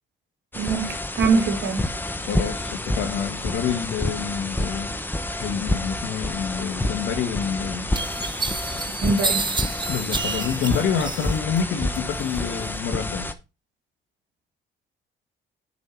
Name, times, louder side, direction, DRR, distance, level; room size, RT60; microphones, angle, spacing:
sound 1, 0.5-13.3, left 1 dB, 10° left, 1.1 m, -29 dB
voice 1, 0.6-1.9 9.0-9.6, right 4 dB, 70° right, 2.1 m, -23 dB
voice 2, 2.2-4.9 5.4-7.9 9.9-13.3, left 7 dB, 80° left, 1.7 m, -27 dB
sound 2, 7.2-7.3 7.9-11.6 12.0-12.7, right 4 dB, 25° right, 1.0 m, -29 dB
7.2 x 6.1 x 4.6 m
cardioid pair, 90°, 20 cm